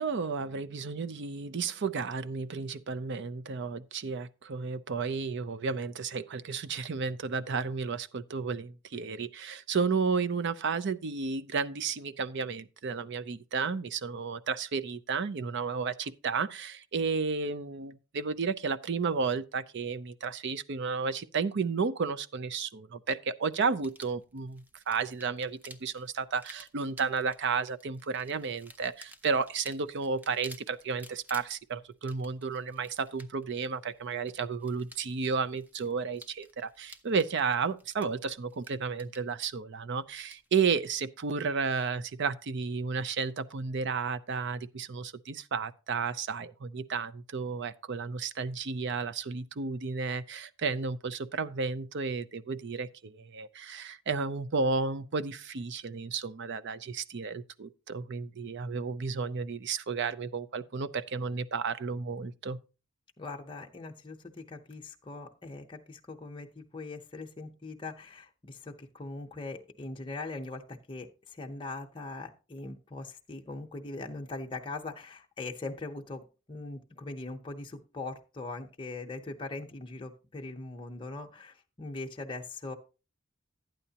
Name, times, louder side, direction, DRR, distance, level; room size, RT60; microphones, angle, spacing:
voice 1, 0.0-62.6, right 5 dB, 55° right, 0.5 m, -32 dB
sound 1, 23.8-41.0, right 1 dB, 10° right, 0.5 m, -55 dB
voice 2, 63.2-82.7, left 3 dB, 25° left, 0.8 m, -41 dB
12.0 x 9.0 x 2.8 m
head